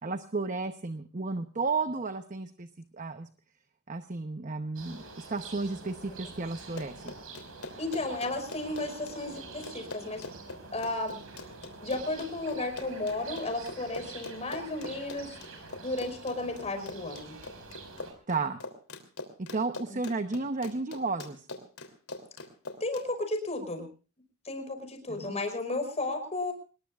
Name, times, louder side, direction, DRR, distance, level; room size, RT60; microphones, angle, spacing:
voice 1, 0.0-2.7 2.9-3.3 3.9-5.0 5.3-7.1 18.3-18.6 19.4-21.5 25.1-25.4, right 3 dB, 35° right, 9 dB, 0.9 m, -33 dB
sound 1, 4.8-18.1, right 3 dB, 75° right, 5.4 m, -47 dB
Run, 6.6-23.1, left 3 dB, 90° left, 3.2 m, -43 dB
voice 2, 7.8-10.2 10.7-11.2 11.8-15.4 15.8-17.4 19.9-20.0 22.8-23.9 24.4-26.5, left 2 dB, 30° left, 6 dB, 5.3 m, -33 dB
25.5 x 20.5 x 2.4 m, 0.37 s
head